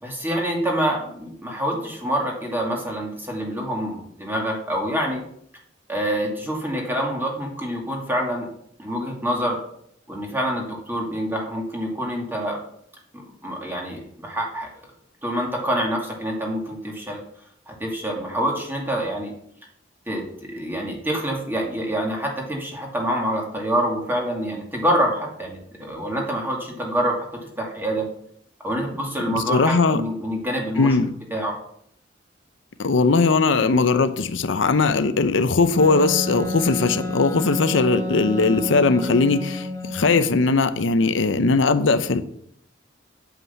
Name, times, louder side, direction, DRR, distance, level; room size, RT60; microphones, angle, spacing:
voice 1, 0.0-5.2 5.9-8.5 8.8-9.6 10.1-12.6 13.1-14.7 15.2-17.2 17.7-19.3 20.1-27.2 27.6-28.1 28.6-31.0 31.3-31.6, equal, 10° right, -1 dB, 2.3 m, -26 dB
voice 2, 29.3-30.0 30.8-31.1 32.8-42.2, left 3 dB, 80° left, 11 dB, 0.7 m, -19 dB
Wind instrument woodwind instrument, 35.8-40.4, left 2 dB, 20° left, 1.4 m, -30 dB
8.2 x 7.5 x 5.7 m, 0.69 s
head